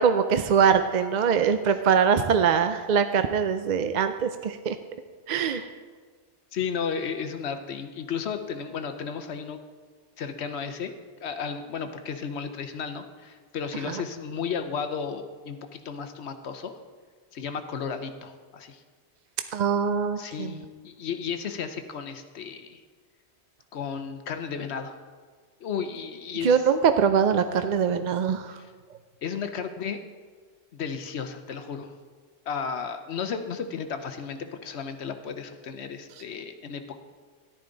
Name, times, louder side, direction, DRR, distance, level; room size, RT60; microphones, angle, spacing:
voice 1, 0.0-4.8 5.3-5.7 19.5-20.5 26.4-28.5, right 7 dB, 55° right, 9 dB, 0.5 m, -23 dB
voice 2, 6.5-9.6 10.2-10.9 11.2-16.7 17.3-18.8 20.2-22.8 23.7-24.9 25.6-26.7 28.5-28.7 29.2-30.0 30.7-31.9 32.5-37.0, left 6 dB, 75° left, 8 dB, 1.0 m, -33 dB
13.5 x 11.0 x 3.9 m, 1.5 s
omnidirectional pair, 1.1 m